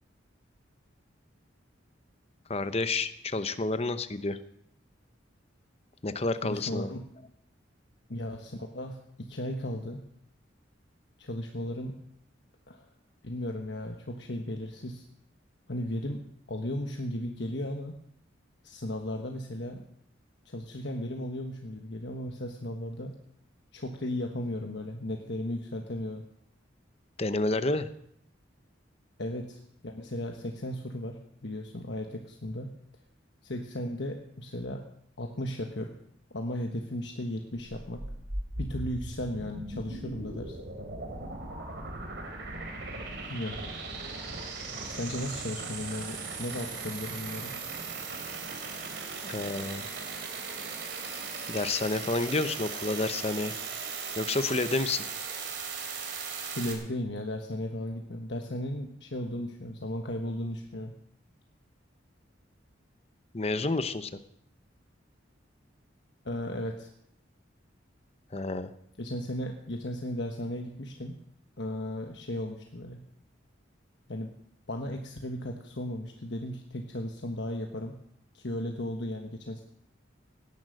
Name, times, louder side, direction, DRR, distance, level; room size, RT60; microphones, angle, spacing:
voice 1, 2.5-4.4 6.0-6.9 27.2-27.9 49.2-49.9 51.5-53.5 54.2-55.0 63.3-64.1 68.3-68.7, left 2 dB, 35° left, 12 dB, 0.8 m, -29 dB
voice 2, 6.4-7.1 8.1-10.0 11.2-12.0 12.7-12.9 13.2-15.0 15.7-16.2 16.5-17.9 18.6-19.8 20.4-23.1 23.7-26.2 29.2-32.7 33.4-34.8 35.2-36.0 36.3-38.0 38.6-40.6 43.2-43.6 44.8-47.5 56.5-60.9 66.2-66.9 69.0-71.1 71.6-73.0 74.1-74.3 74.7-78.0 78.3-79.6, left 1 dB, 65° left, 3 dB, 1.3 m, -35 dB
sound 1, 37.6-56.7, right 4 dB, 60° right, 3.1 m, -38 dB
17.5 x 10.5 x 6.5 m, 0.73 s
head